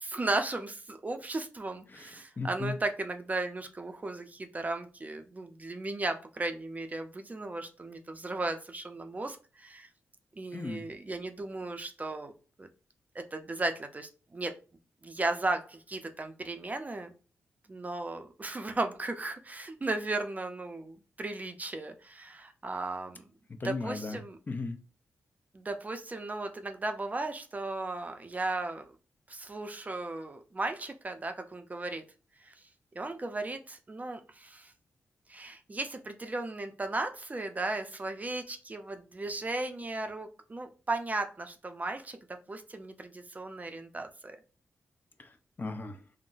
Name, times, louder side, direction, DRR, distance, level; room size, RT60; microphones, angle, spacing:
voice 1, 0.0-9.9 10.4-12.3 12.6-12.7 13.1-14.6 15.0-17.1 17.7-23.3 23.6-24.4 25.5-29.0 29.3-32.1 32.4-32.5 32.9-34.7 35.3-44.4, right 2 dB, 30° right, 6 dB, 0.5 m, -36 dB
voice 2, 2.4-2.8 10.5-10.8 23.6-24.2 24.5-24.8 45.2-46.0, left 3 dB, 35° left, 7 dB, 0.5 m, -36 dB
3.8 x 2.1 x 2.5 m, 0.34 s
cardioid pair, 65°, 5 cm